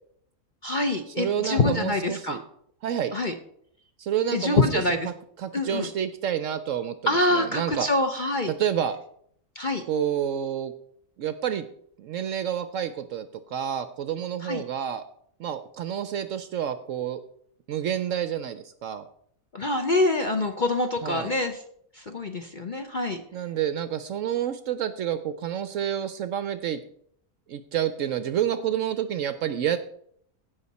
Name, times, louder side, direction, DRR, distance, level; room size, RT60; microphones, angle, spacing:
voice 1, 0.6-2.4 3.1-3.3 4.3-5.1 5.5-5.9 7.1-8.5 9.6-9.8 14.4-14.6 19.5-21.6 21.9-23.2, left 2 dB, 40° left, 5 dB, 0.7 m, -25 dB
voice 2, 1.2-2.4 2.8-3.1 4.0-5.1 5.4-7.9 8.5-9.0 9.9-10.7 11.2-11.6 12.0-15.0 15.4-17.2 17.7-19.0 21.0-21.3 23.3-26.8 27.5-29.8, right 9 dB, 65° right, 11 dB, 0.8 m, -29 dB
16.5 x 5.7 x 4.1 m, 0.67 s
omnidirectional pair, 1.7 m